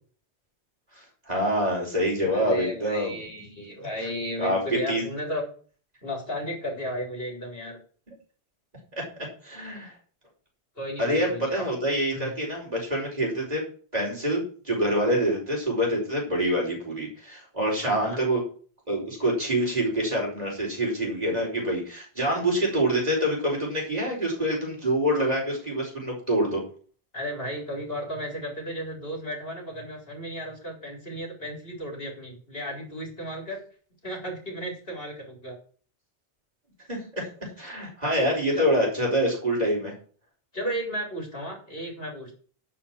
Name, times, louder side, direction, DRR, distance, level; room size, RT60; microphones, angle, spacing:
voice 1, 1.3-3.1 4.4-5.1 9.4-9.9 11.0-13.6 13.9-18.4 18.9-26.6 36.9-37.3 37.6-39.9, equal, 35° right, -2 dB, 5.1 m, -26 dB
voice 2, 2.3-5.4 6.0-7.8 10.8-11.6 12.1-12.3 17.8-18.2 27.1-33.6 34.0-35.6 38.5-38.7 40.5-42.4, equal, 60° left, 1 dB, 4.1 m, -34 dB
11.5 x 5.6 x 7.4 m, 0.42 s
omnidirectional pair, 1.1 m